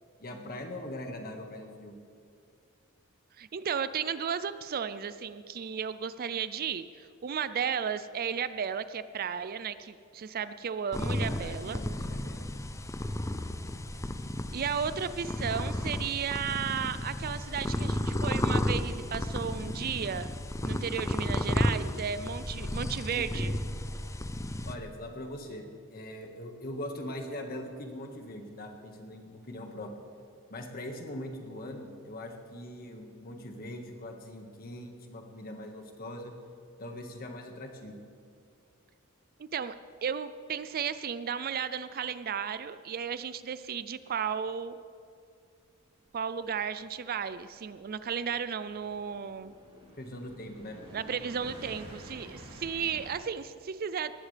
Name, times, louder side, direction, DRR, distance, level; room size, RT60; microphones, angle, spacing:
voice 1, 0.2-1.9 11.2-12.4 22.8-23.5 24.6-29.9 30.5-36.3 36.8-38.0 49.9-50.8, left 1 dB, 45° left, 3 dB, 1.7 m, -41 dB
voice 2, 3.4-11.8 14.5-20.3 20.6-23.5 39.4-39.7 40.0-44.8 46.1-49.6 50.9-54.1, right 7 dB, 45° right, 13 dB, 0.4 m, -34 dB
sound 1, 10.9-24.8, left 1 dB, 15° left, 0.5 m, -33 dB
sound 2, 46.1-53.1, right 1 dB, 25° right, 3.6 m, -50 dB
19.5 x 14.5 x 3.4 m, 2.3 s
head